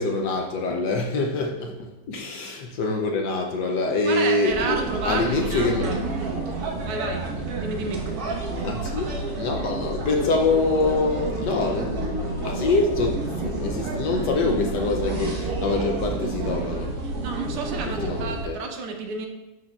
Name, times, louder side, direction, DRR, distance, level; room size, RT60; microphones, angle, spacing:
voice 1, 0.0-4.8 5.1-6.0 6.3-6.5 8.6-9.1 9.4-12.1 12.4-17.0 17.9-18.6, left 3 dB, 70° left, 2 dB, 1.1 m, -25 dB
voice 2, 4.0-6.0 6.8-7.2 7.6-8.0 17.0-19.3, right 4 dB, 90° right, 4 dB, 1.9 m, -31 dB
sound 1, 4.5-18.4, right 3 dB, 50° right, 1.5 m, -29 dB
sound 2, 10.4-17.8, left 1 dB, ahead, 2.8 m, -50 dB
11.5 x 6.4 x 2.4 m, 0.99 s
omnidirectional pair, 2.4 m